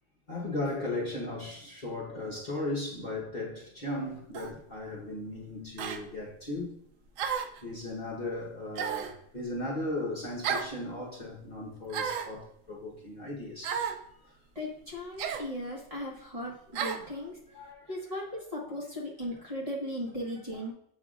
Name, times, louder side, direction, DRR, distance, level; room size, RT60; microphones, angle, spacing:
voice 1, 0.3-6.7 7.6-13.9 14.2-14.3 16.9-17.0 17.5-18.2 18.7-18.8 20.5-20.6, left 2 dB, 35° left, 1.2 m, -37 dB
sound 1, 4.3-4.6 5.8-6.0 7.2-7.6 8.8-9.2 10.4-10.7 11.9-12.3 13.6-14.0 15.2-15.5 16.7-17.0, right 7 dB, 85° right, 1.0 m, -33 dB
voice 2, 14.5-17.4 17.9-20.7, left 1 dB, 25° right, 1.6 m, -37 dB
7.4 x 5.8 x 2.4 m
omnidirectional pair, 1.4 m